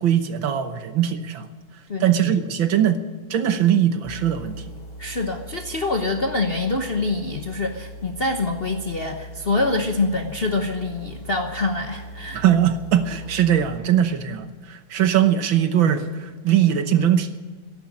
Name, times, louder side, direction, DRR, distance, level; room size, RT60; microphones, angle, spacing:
voice 1, 0.0-1.5 2.0-3.0 3.3-4.6 12.3-17.4, right 10 dB, 70° right, 10 dB, 1.7 m, -20 dB
voice 2, 1.9-2.3 5.0-12.4, left 3 dB, 40° left, 4 dB, 0.8 m, -25 dB
sound 1, 4.0-13.8, equal, 20° left, 3.5 m, -40 dB
13.5 x 11.5 x 8.6 m, 1.4 s
omnidirectional pair, 2.3 m